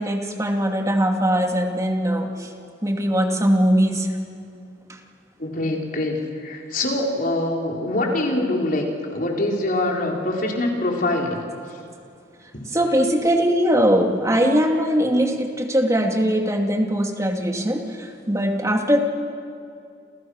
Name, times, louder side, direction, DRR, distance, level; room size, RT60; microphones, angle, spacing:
voice 1, 0.0-2.5 2.8-4.1 12.7-19.0, equal, 15° right, 3 dB, 2.4 m, -21 dB
voice 2, 5.4-11.4 12.5-12.7, left 1 dB, 45° left, 0 dB, 4.3 m, -24 dB
30.0 x 28.5 x 6.5 m, 2.3 s
head